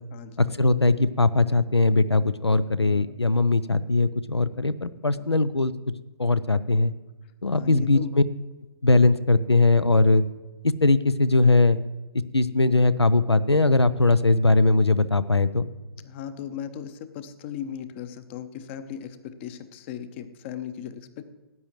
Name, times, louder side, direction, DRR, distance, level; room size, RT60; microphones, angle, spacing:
voice 1, 0.6-5.7 6.2-6.9 7.4-8.2 8.8-10.2 10.6-11.8 12.3-15.7, left 3 dB, 85° left, 16 dB, 0.5 m, -20 dB
voice 2, 2.8-3.2 5.1-5.4 7.5-8.1 16.0-21.2, left 9 dB, 25° left, 12 dB, 0.7 m, -37 dB
18.5 x 9.1 x 3.1 m, 1.2 s
figure-of-eight pair, 130°, 14 cm